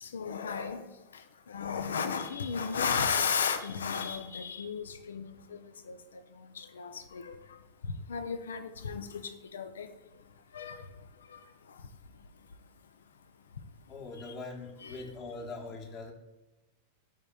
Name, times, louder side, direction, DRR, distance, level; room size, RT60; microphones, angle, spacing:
voice 1, 0.0-0.8 1.5-5.6 5.9-6.0 6.6-7.3 8.1-9.1 9.5-9.9 10.5-10.8 14.8-15.0, left 6 dB, 65° left, 10 dB, 0.5 m, -33 dB
voice 2, 13.9-16.1, left 3 dB, 30° left, 4 dB, 1.2 m, -42 dB
13.0 x 5.4 x 2.3 m, 1.1 s
figure-of-eight pair, 90°, 0 cm